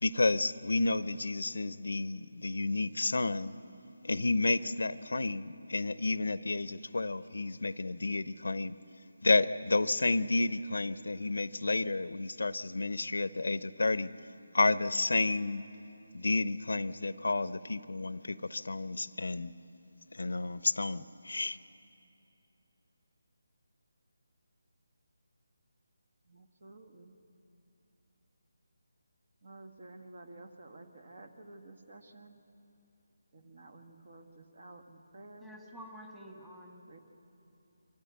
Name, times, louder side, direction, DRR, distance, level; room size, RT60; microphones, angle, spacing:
voice 1, 0.0-3.5 4.0-8.8 9.2-14.1 14.5-15.6 16.1-19.5 20.1-21.6, left 2 dB, 80° left, 16 dB, 0.6 m, -31 dB
voice 2, 26.2-27.1 29.4-32.4 33.3-35.5 36.8-37.0, right 2 dB, 55° right, 6 dB, 1.7 m, -52 dB
voice 3, 35.4-37.0, equal, 5° right, -1 dB, 1.6 m, -49 dB
24.5 x 14.5 x 8.2 m, 2.8 s
figure-of-eight pair, 160°, 0 cm